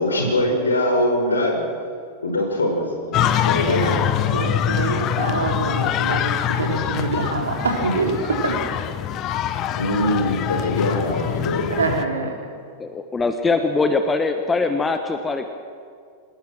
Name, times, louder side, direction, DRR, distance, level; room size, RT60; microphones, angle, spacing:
voice 1, 0.0-1.6 2.2-4.0 9.7-11.7, left 1 dB, 75° left, 2 dB, 5.6 m, -22 dB
sound 1, 3.1-12.1, left 10 dB, 35° left, 1.2 m, -24 dB
voice 2, 4.3-6.3 6.6-8.5 11.7-12.3, right 3 dB, 70° right, 1 dB, 3.9 m, -25 dB
voice 3, 12.8-15.5, left 3 dB, 15° left, 7 dB, 1.3 m, -22 dB
26.5 x 20.0 x 6.2 m, 2.2 s
figure-of-eight pair, 90°, 0 cm